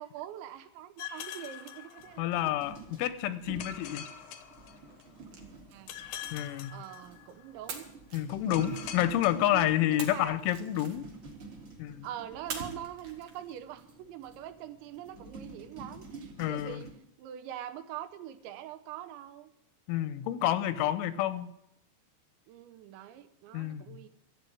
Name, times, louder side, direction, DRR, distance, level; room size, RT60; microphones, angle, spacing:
voice 1, 0.0-2.2 5.7-6.0 6.7-7.9 8.3-8.8 9.5-10.4 12.0-16.9 17.2-19.5 22.5-24.1, right 11 dB, 80° right, 10 dB, 3.0 m, -43 dB
sound 1, 1.0-2.6 3.6-5.3 5.9-7.5 8.5-10.3, left 9 dB, 75° left, 2.1 m, -44 dB
sound 2, 2.0-16.9, right 3 dB, 30° right, 3.1 m, -50 dB
voice 2, 2.2-4.1 6.3-6.7 8.1-11.1 11.8-12.1 16.4-16.8 19.9-21.5 23.5-24.0, left 13 dB, 90° left, 14 dB, 3.3 m, -29 dB
sound 3, 4.9-7.2 7.7-9.2 10.0-11.4 12.5-13.8, right 5 dB, 50° right, 2.6 m, -46 dB
13.5 x 8.2 x 9.7 m, 0.80 s
omnidirectional pair, 5.4 m